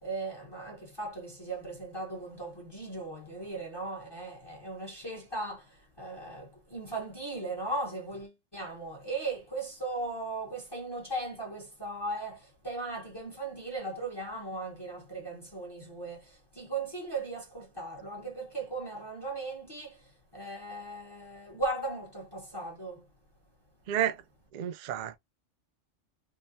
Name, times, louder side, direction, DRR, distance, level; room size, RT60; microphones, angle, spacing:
voice 1, 0.0-23.1, right 2 dB, 20° left, 1.0 m, -37 dB
voice 2, 23.9-24.2 24.5-25.2, right 11 dB, 85° right, 0.4 m, -30 dB
3.7 x 2.1 x 2.6 m
omnidirectional pair, 1.3 m